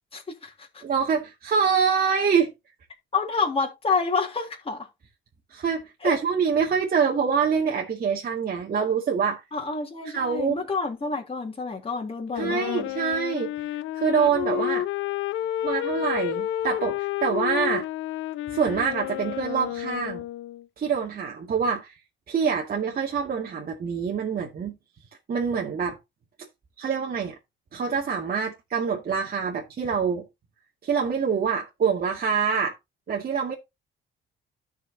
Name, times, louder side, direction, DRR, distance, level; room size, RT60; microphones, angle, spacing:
voice 1, 0.1-0.8 3.1-4.9 6.0-6.2 9.5-12.9, left 4 dB, 30° left, 3.3 m, -28 dB
voice 2, 0.8-2.5 5.5-9.4 10.1-10.6 12.4-13.5 13.9-14.9 15.6-17.9 18.5-20.2 20.8-22.0 22.3-24.8 25.3-26.0 26.8-27.3 27.7-30.3 30.8-32.8 33.1-33.5, right 6 dB, 50° right, 2.2 m, -25 dB
Wind instrument woodwind instrument, 12.3-20.6, left 13 dB, 85° left, 0.7 m, -30 dB
14.0 x 6.1 x 2.8 m
cardioid pair, 90°, 20 cm